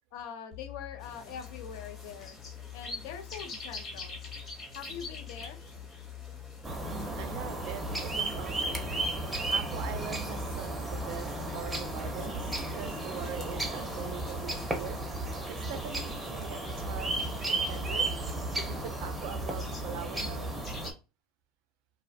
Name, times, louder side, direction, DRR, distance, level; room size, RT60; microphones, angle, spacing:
voice 1, 0.1-2.4 2.7-4.2 4.8-5.6, left 8 dB, 75° left, 0.5 m, -43 dB
sound 1, 0.5-12.1, left 10 dB, 55° left, 0.9 m, -47 dB
sound 2, 1.0-20.9, left 2 dB, 25° left, 0.7 m, -48 dB
sound 3, 6.6-20.9, right 2 dB, 10° right, 0.5 m, -34 dB
voice 2, 6.9-9.2 9.5-15.0 15.5-17.1 17.5-18.1 18.6-20.5, right 8 dB, 65° right, 0.4 m, -42 dB
2.4 x 2.1 x 2.6 m
cardioid pair, 145°, 0 cm